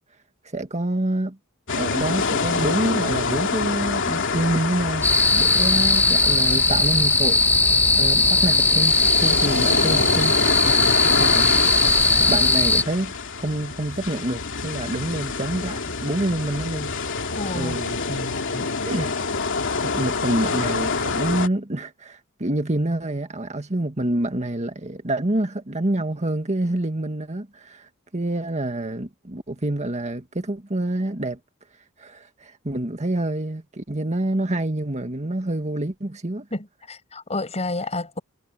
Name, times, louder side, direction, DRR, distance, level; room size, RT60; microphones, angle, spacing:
voice 1, 0.5-1.4 1.8-7.4 7.9-10.4 11.2-11.5 12.3-17.0 17.5-19.2 19.8-31.4 32.0-36.5, right 1 dB, 35° right, 1.8 m, -27 dB
sound 1, 1.7-21.5, left 4 dB, 60° left, 2.9 m, -27 dB
sound 2, 5.0-12.8, left 3 dB, 10° left, 1.1 m, -18 dB
voice 2, 17.4-17.8 36.5-38.2, left 2 dB, 30° left, 7.0 m, -30 dB
head